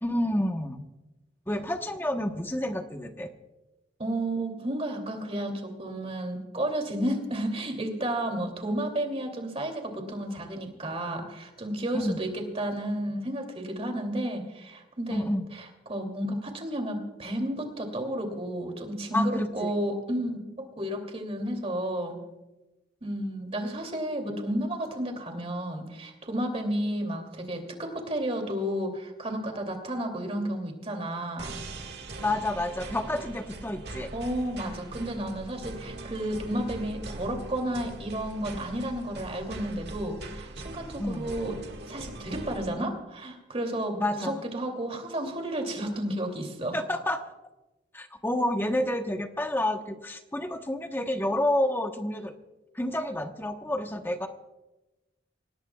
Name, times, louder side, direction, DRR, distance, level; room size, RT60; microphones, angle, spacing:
voice 1, 0.0-0.8 1.5-3.3 11.9-12.2 15.1-15.5 19.1-19.7 32.2-34.1 41.0-41.3 44.0-44.4 46.7-47.3 47.9-52.3 52.7-54.3, left 1 dB, 10° left, 5 dB, 1.1 m, -29 dB
voice 2, 4.0-22.2 23.0-31.6 34.1-41.5 41.8-46.8, right 1 dB, 30° right, 4 dB, 2.8 m, -32 dB
sound 1, 31.4-42.7, right 2 dB, 60° right, 1.8 m, -41 dB
25.5 x 18.0 x 2.4 m, 1.0 s
head